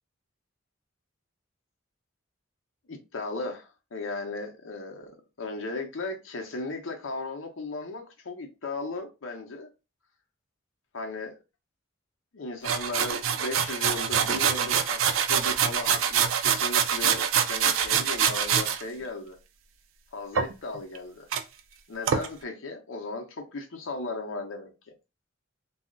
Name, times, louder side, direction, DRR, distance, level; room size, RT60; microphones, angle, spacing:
voice 1, 2.9-5.1 5.4-9.7 10.9-11.3 12.3-19.4 20.1-21.3 21.9-24.7, left 3 dB, 85° left, 0.7 m, -36 dB
sound 1, 12.6-18.8 20.3-21.0 21.3-21.4 22.1-22.3, right 8 dB, 85° right, 0.4 m, -25 dB
2.4 x 2.0 x 3.7 m
head